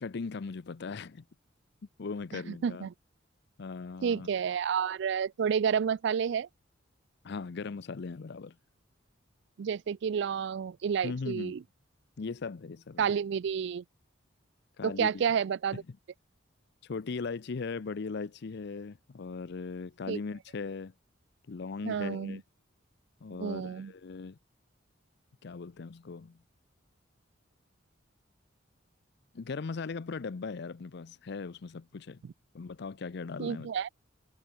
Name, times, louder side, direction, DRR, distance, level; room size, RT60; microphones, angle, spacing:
voice 1, 0.0-1.2 2.0-2.9 3.6-4.3 7.2-8.5 11.0-11.6 12.2-13.0 14.8-15.2 15.7-15.8 16.8-20.9 21.5-22.4 23.2-24.4 25.4-26.4 29.3-32.2 32.5-33.7, left 4 dB, 60° left, 0.5 m, -38 dB
voice 2, 2.3-2.9 4.0-6.5 9.6-11.6 13.0-13.8 14.8-15.8 20.1-20.2 21.8-22.4 23.4-23.9 33.4-33.9, right 7 dB, 65° right, 0.4 m, -30 dB
head